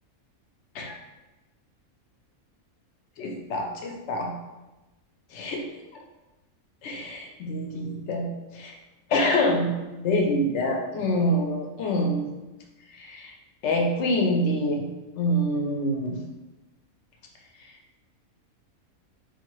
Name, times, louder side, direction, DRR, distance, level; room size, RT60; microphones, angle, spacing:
voice 1, 3.2-4.3 5.3-5.7 6.8-8.8 9.1-9.7 10.0-12.3 12.9-13.3 13.6-14.9 15.2-16.2 17.6-17.7, left 1 dB, 65° left, 2 dB, 0.8 m, -26 dB
3.9 x 2.3 x 3.0 m, 1.1 s
omnidirectional pair, 1.5 m